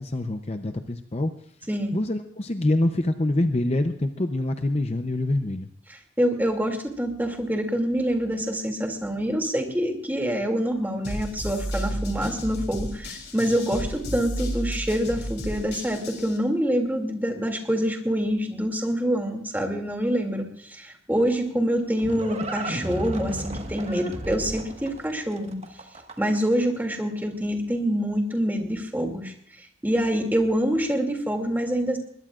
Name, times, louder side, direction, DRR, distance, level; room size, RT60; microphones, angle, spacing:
voice 1, 0.0-1.3 1.9-5.7 11.9-12.3, left 1 dB, 35° left, 7 dB, 0.7 m, -26 dB
voice 2, 5.9-25.6 26.2-32.0, equal, 10° right, 2 dB, 2.6 m, -26 dB
sound 1, 11.0-16.4, equal, 55° left, 3.4 m, -32 dB
Livestock farm animals working animals, 21.4-26.5, right 1 dB, 35° right, 1.5 m, -34 dB
21.5 x 21.0 x 2.5 m, 0.67 s
head